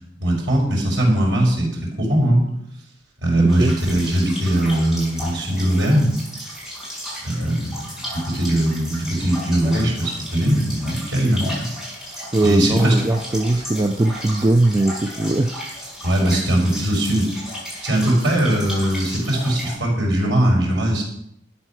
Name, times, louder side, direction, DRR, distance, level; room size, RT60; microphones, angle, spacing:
voice 1, 0.2-2.4 3.2-6.1 7.2-7.7 8.1-11.7 12.4-12.9 16.0-17.3 17.8-21.0, right 1 dB, 70° right, -1 dB, 5.3 m, -20 dB
voice 2, 3.4-3.7 12.3-15.5, right 2 dB, 20° right, 7 dB, 0.5 m, -20 dB
sound 1, 3.5-19.8, equal, ahead, 5.6 m, -34 dB
12.5 x 8.9 x 5.9 m, 0.75 s
head